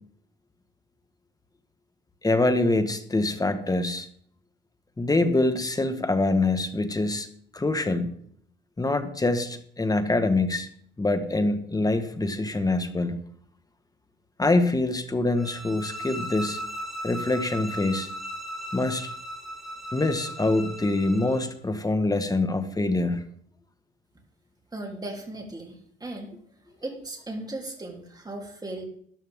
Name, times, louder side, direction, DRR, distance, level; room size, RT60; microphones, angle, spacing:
voice 1, 2.2-4.1 5.0-7.3 7.5-8.1 8.8-10.7 11.0-13.2 14.4-16.6 17.0-18.1 18.7-19.1 19.9-23.2, left 2 dB, 20° left, 9 dB, 1.4 m, -25 dB
sound 1, 15.3-21.5, equal, ahead, 3.3 m, -37 dB
voice 2, 24.7-26.3 26.8-28.8, right 2 dB, 20° right, 1 dB, 3.3 m, -37 dB
13.0 x 11.5 x 3.7 m, 0.65 s
cardioid pair, 90°, 20 cm